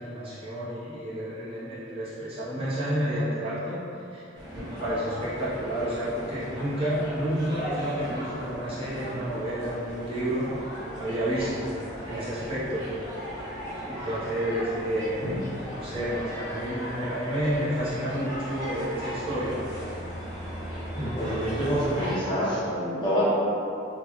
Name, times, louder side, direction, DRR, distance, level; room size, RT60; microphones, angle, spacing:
voice 1, 0.0-3.8 4.1-4.2 4.5-10.5 10.9-11.8 12.0-12.9 13.8-15.3 15.6-19.6, equal, 30° right, -11 dB, 0.9 m, -30 dB
sound 1, 4.3-22.2, equal, 65° right, 1.3 m, -37 dB
voice 2, 20.9-23.2, equal, 25° left, -11 dB, 0.9 m, -27 dB
3.9 x 2.4 x 3.1 m, 2.8 s
head